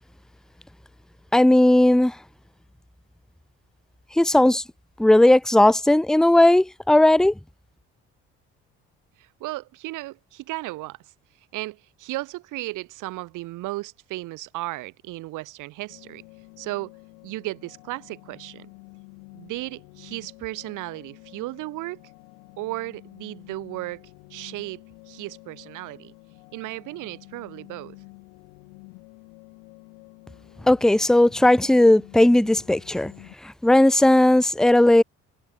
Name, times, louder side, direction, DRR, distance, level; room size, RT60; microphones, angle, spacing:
voice 1, 1.3-2.1 4.2-4.6 5.0-7.3 30.7-33.1 33.6-35.0, left 1 dB, ahead, 0.7 m, -16 dB
voice 2, 9.2-11.0 11.5-16.2 16.6-16.9 17.2-18.7 19.3-22.0 22.6-26.1 26.5-28.0, right 19 dB, 70° right, 1.0 m, -35 dB
sound 1, 15.9-33.3, left 40 dB or more, 85° left, 2.8 m, -49 dB
hypercardioid pair, 60°, 32 cm